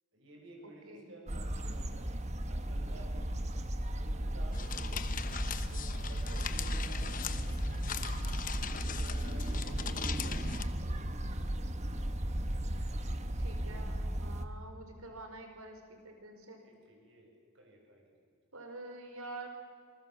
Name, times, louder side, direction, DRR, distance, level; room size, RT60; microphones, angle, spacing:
voice 1, 0.1-2.1 2.5-3.3 3.8-5.0 5.6-7.8 8.7-9.8 10.2-10.8 16.6-18.3, right 1 dB, 60° right, 1 dB, 5.7 m, -54 dB
voice 2, 0.6-1.1 6.3-6.6 9.6-10.1 13.1-16.6 18.5-19.5, right 2 dB, 80° right, 5 dB, 4.6 m, -48 dB
sound 1, 1.3-14.5, right 1 dB, 30° right, 1.2 m, -35 dB
sound 2, 4.5-10.6, left 5 dB, 40° left, 1.0 m, -40 dB
27.0 x 20.5 x 7.4 m, 2.2 s
head